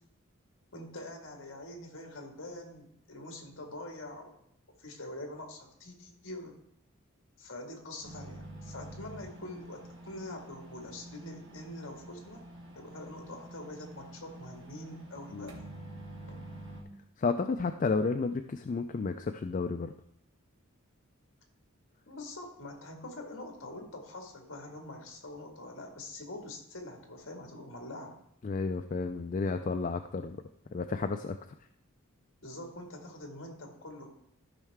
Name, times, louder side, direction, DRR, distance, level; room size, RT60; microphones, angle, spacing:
voice 1, 0.7-4.4 4.8-6.5 7.4-12.4 12.7-15.5 22.1-28.2 32.4-34.1, left 1 dB, 55° left, 2 dB, 2.0 m, -44 dB
sound 1, 8.0-16.8, right 1 dB, 55° right, 1.8 m, -47 dB
voice 2, 17.2-19.9 28.4-30.4 30.7-31.4, left 4 dB, 35° left, 7 dB, 0.3 m, -32 dB
14.0 x 5.5 x 3.6 m, 0.76 s
head